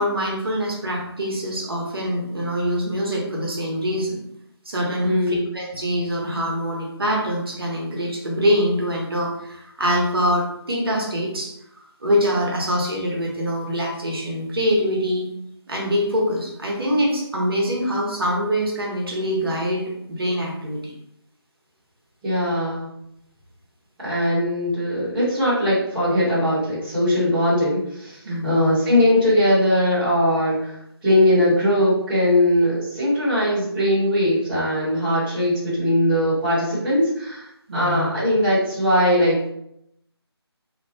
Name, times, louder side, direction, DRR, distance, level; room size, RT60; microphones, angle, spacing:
voice 1, 0.0-4.2 4.6-15.3 15.7-20.9 28.2-28.7 37.7-38.0, equal, 60° right, -2 dB, 1.0 m, -24 dB
voice 2, 5.0-5.4 22.2-22.9 24.0-39.5, left 1 dB, 5° right, -17 dB, 0.9 m, -20 dB
2.8 x 2.1 x 2.6 m, 0.77 s
figure-of-eight pair, 160°, 14 cm